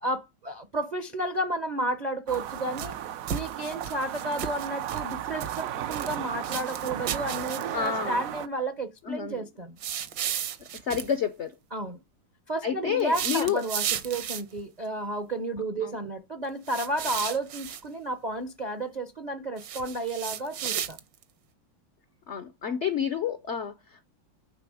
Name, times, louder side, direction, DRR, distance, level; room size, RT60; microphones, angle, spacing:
voice 1, 0.0-3.0 3.3-9.8 11.7-12.0 12.5-21.0, right 2 dB, 50° right, 0.4 m, -32 dB
sound 1, 2.3-3.0 3.3-5.1 5.4-6.2 6.4-7.9 9.8-11.1 13.0-14.6 16.7-17.8 19.6-21.2, right 9 dB, 70° right, 1.4 m, -34 dB
sound 2, 2.3-8.5, right 11 dB, 90° right, 0.7 m, -35 dB
voice 2, 7.7-8.2 9.1-9.4 10.8-11.5 12.6-13.6 15.8-15.9 22.3-24.1, left 8 dB, 75° left, 0.6 m, -29 dB
9.2 x 3.7 x 4.9 m
omnidirectional pair, 2.2 m